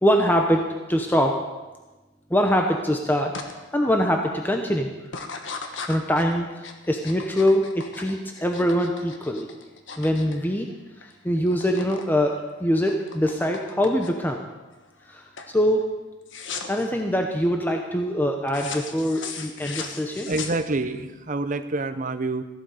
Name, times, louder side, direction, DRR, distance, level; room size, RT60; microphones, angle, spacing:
voice 1, 0.0-1.4 2.3-5.0 5.6-9.5 10.0-10.7 11.2-14.4 15.1-15.9 16.7-20.4, equal, 10° left, 3 dB, 0.8 m, -23 dB
sound 1, 3.3-3.5 4.0-4.4 5.1-11.1 11.4-12.1 12.4-14.3 14.8-15.1 15.4-15.6 16.3-16.9 18.5-21.0, left 5 dB, 80° left, 1.3 m, -38 dB
voice 2, 20.3-22.4, right 2 dB, 45° right, 9 dB, 0.8 m, -27 dB
14.5 x 11.5 x 4.9 m, 1.2 s
head